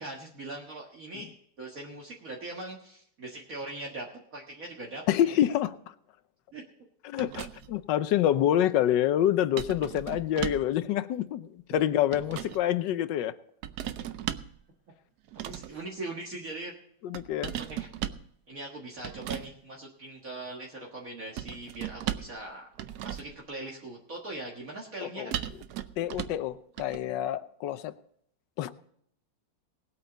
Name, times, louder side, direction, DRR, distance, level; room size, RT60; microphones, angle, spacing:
voice 1, 0.0-4.1 4.3-5.5 6.5-6.6 15.3-16.7 17.7-17.9 18.5-22.7 23.0-25.3, right 2 dB, 50° right, -2 dB, 2.0 m, -41 dB
voice 2, 5.1-5.7 7.0-13.3 17.0-17.5 25.0-25.3 26.0-27.9 28.6-28.7, left 11 dB, 80° left, 13 dB, 1.3 m, -27 dB
sound 1, 7.2-7.8 9.6-10.8 11.8-12.6 13.6-14.6 15.3-15.8 17.1-18.3 19.0-19.5 21.4-22.4 22.8-23.4 25.3-26.5 26.8-27.0, right 11 dB, 70° right, 1.2 m, -37 dB
19.5 x 8.6 x 4.0 m, 0.69 s
omnidirectional pair, 1.9 m